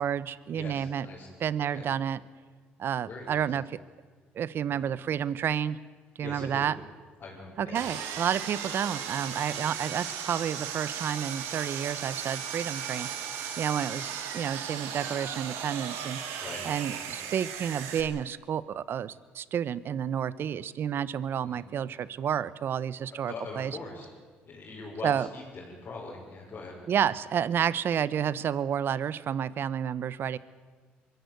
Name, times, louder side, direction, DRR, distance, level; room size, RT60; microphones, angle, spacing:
voice 1, 0.0-1.1 1.4-2.2 2.8-3.8 4.3-5.8 6.2-6.7 7.6-16.2 16.6-23.8 25.0-25.3 26.9-30.4, right 8 dB, 55° right, 19 dB, 0.9 m, -30 dB
voice 2, 0.5-1.3 1.7-1.8 3.0-3.5 4.7-4.9 6.2-6.7 7.2-7.8 16.4-16.6 17.0-17.1 21.4-21.6 23.1-24.1 24.5-26.8, left 3 dB, 45° left, -6 dB, 6.0 m, -42 dB
Sawing, 7.7-18.0, right 8 dB, 80° right, 2.8 m, -36 dB
23.5 x 15.0 x 9.4 m, 1.4 s
supercardioid pair, 70°, 4 cm